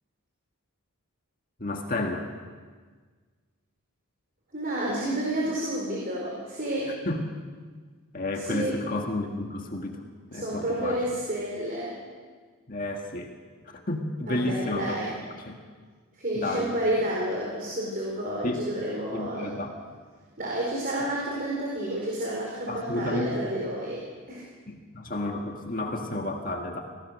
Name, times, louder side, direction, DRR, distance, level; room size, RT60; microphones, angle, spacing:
voice 1, 1.6-2.3 7.1-7.2 8.1-10.0 10.3-11.0 12.7-13.3 13.7-15.0 15.5-15.6 16.4-16.7 18.4-18.6 19.1-19.7 22.7-23.4 24.7-26.8, left 2 dB, 40° left, 2 dB, 1.9 m, -31 dB
voice 2, 4.5-7.0 8.3-8.8 10.3-11.9 14.3-15.1 16.2-19.6 20.4-24.4, right 1 dB, 40° right, -3 dB, 4.6 m, -30 dB
26.5 x 18.0 x 6.5 m, 1.5 s
head